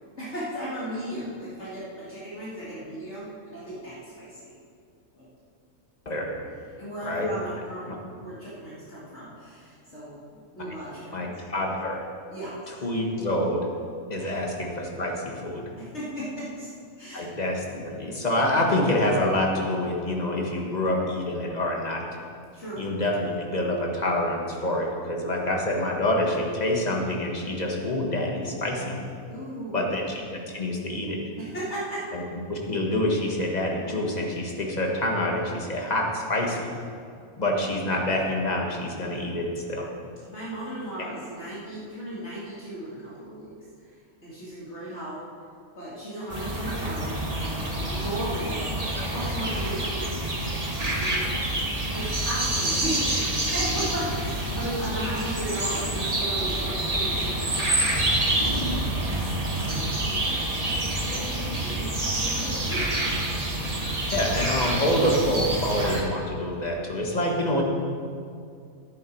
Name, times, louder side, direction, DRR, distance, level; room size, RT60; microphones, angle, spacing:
voice 1, 0.2-4.5 5.1-5.3 6.8-11.3 12.3-12.8 14.2-14.3 15.8-16.7 17.0-17.3 22.5-22.8 29.3-29.9 31.4-32.1 40.3-43.5 43.9-45.3 45.8-48.8 49.1-50.3 50.7-51.3 51.7-58.6 59.0-59.3 59.6-60.4 61.0-61.3 61.6-62.9 63.9-64.1, right 1 dB, 55° left, -9 dB, 2.6 m, -36 dB
voice 2, 11.1-12.0 12.8-13.7 14.1-15.7 17.1-22.0 22.8-29.0 29.7-30.2 30.5-31.2 32.1-32.2 32.5-36.7 37.4-39.9 64.1-67.6, left 1 dB, 30° left, 0 dB, 1.5 m, -26 dB
sound 1, 46.3-66.0, right 1 dB, 30° right, 1.6 m, -27 dB
11.5 x 10.5 x 4.6 m, 2.3 s
omnidirectional pair, 1.4 m